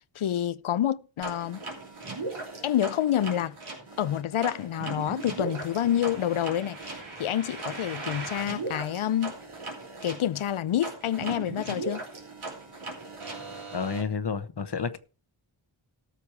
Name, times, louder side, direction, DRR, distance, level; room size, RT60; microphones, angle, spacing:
voice 1, 0.2-1.6 2.6-3.5 4.0-9.4 10.0-12.0, left 11 dB, 80° left, 0.6 m, -28 dB
sound 1, 1.2-14.0, right 3 dB, 80° right, 3.5 m, -38 dB
voice 2, 13.7-15.0, left 6 dB, 55° left, 0.9 m, -30 dB
13.0 x 7.0 x 4.6 m
wide cardioid pair, 80°, 49 cm